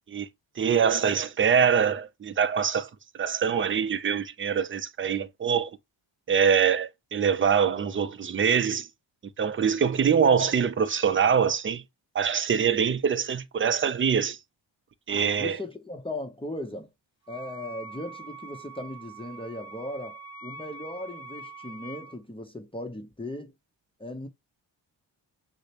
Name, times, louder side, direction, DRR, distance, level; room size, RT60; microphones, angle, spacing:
voice 1, 0.6-2.9 3.1-5.8 6.3-8.9 9.4-11.8 12.1-14.4 15.1-15.6, right 7 dB, 30° right, 0.4 m, -24 dB
voice 2, 15.4-16.9 17.3-23.5 24.0-24.3, left 1 dB, 10° left, 0.7 m, -37 dB
Wind instrument woodwind instrument, 17.2-22.2, right 3 dB, 35° left, 1.4 m, -44 dB
6.3 x 2.1 x 2.8 m
cardioid pair, 85°, 46 cm